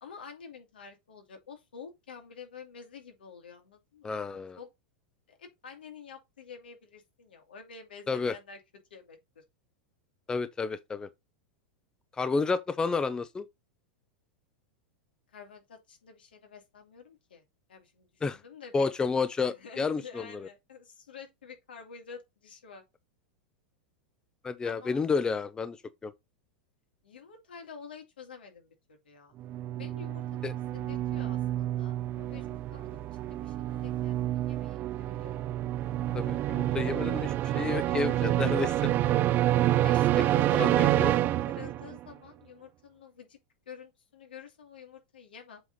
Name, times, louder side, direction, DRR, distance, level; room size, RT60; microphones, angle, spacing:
voice 1, 0.0-4.7 5.3-8.6 8.9-9.4 15.3-17.4 17.7-18.9 19.5-22.8 24.6-25.0 27.0-29.3 29.8-30.2 30.7-35.4 39.1-39.3 39.8-41.2 41.5-43.4 43.7-45.6, left 6 dB, 90° left, 2.4 m, -49 dB
voice 2, 4.0-4.6 8.1-8.3 10.3-11.1 12.2-13.5 18.2-18.4 18.7-20.5 24.4-25.8 26.0-26.1 30.4-30.5 36.1-38.9 40.6-41.1, left 4 dB, 15° left, 0.6 m, -30 dB
sound 1, 29.4-42.0, right 13 dB, 35° right, 0.5 m, -28 dB
7.8 x 3.7 x 4.0 m
hypercardioid pair, 120°, 5 cm